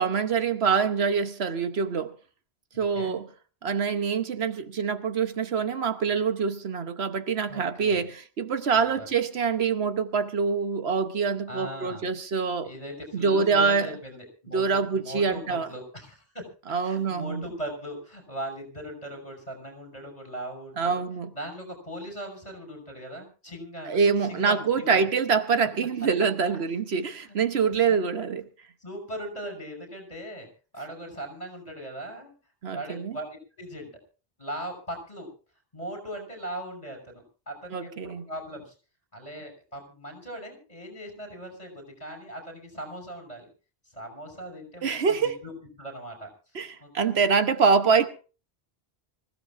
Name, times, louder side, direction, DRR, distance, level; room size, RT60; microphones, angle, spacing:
voice 1, 0.0-2.1 2.8-3.3 3.6-12.7 13.1-13.9 14.5-15.7 16.7-17.4 20.8-21.3 23.9-28.5 32.6-33.2 37.7-38.2 44.8-45.4 46.5-48.1, right 5 dB, 70° right, 1.2 m, -25 dB
voice 2, 2.7-3.2 7.5-8.0 9.0-9.1 11.5-12.0 12.6-16.5 16.8-21.0 21.3-25.0 26.5-26.6 27.3-27.4 28.8-30.5 30.7-32.3 32.7-33.9 34.4-35.3 35.7-38.7 39.1-43.5 43.9-45.5 45.8-46.3 46.8-46.9, right 1 dB, 35° left, 6.2 m, -39 dB
25.5 x 15.5 x 2.5 m
omnidirectional pair, 1.1 m